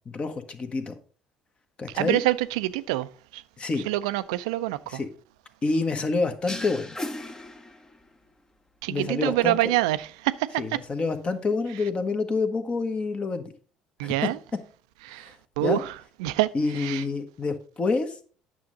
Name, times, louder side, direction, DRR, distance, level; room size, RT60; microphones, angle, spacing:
voice 1, 0.0-0.9 1.8-2.2 3.6-3.9 4.9-5.1 5.6-7.0 8.9-9.6 10.6-13.5 14.0-14.3 15.2-15.3 15.6-15.8 16.5-18.2, left 3 dB, 35° left, 1.2 m, -27 dB
voice 2, 1.9-3.4 3.9-5.0 8.8-10.6 14.0-14.4 15.1-15.3 15.6-15.9 16.2-17.0, right 16 dB, 75° right, 0.4 m, -26 dB
sound 1, 6.5-8.2, left 1 dB, 20° left, 0.9 m, -36 dB
8.9 x 6.3 x 3.9 m
hypercardioid pair, 60°, 3 cm